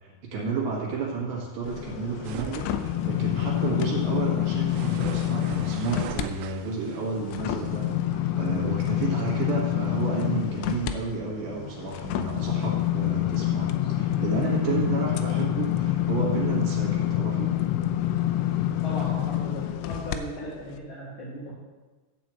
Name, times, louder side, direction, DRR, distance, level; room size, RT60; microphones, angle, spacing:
voice 1, 0.0-7.9 8.1-17.5, right 4 dB, 60° right, -3 dB, 2.2 m, -31 dB
sound 1, 1.6-6.3 6.7-20.2 20.7-20.8, left 12 dB, 85° left, 2.9 m, -27 dB
sound 2, 2.2-8.0, right 9 dB, 85° right, 2.9 m, -41 dB
voice 2, 18.8-21.5, equal, 50° left, -8 dB, 2.6 m, -37 dB
11.5 x 4.5 x 7.5 m, 1.3 s
omnidirectional pair, 5.9 m